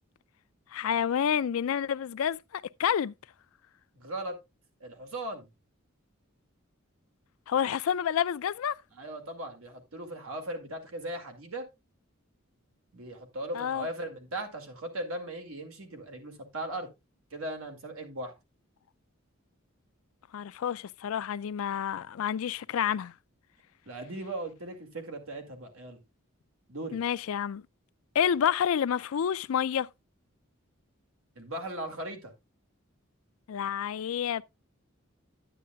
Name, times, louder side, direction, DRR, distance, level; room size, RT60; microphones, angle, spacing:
voice 1, 0.7-3.1 7.5-8.8 13.5-13.9 20.3-23.1 26.9-27.6 28.1-29.9 33.5-34.4, left 8 dB, 80° left, 0.4 m, -29 dB
voice 2, 3.9-4.4 4.8-5.5 8.9-11.7 12.9-16.9 17.3-18.3 23.9-26.0 26.7-27.0 31.4-32.3, right 1 dB, 90° right, 2.0 m, -38 dB
10.0 x 9.2 x 2.3 m
head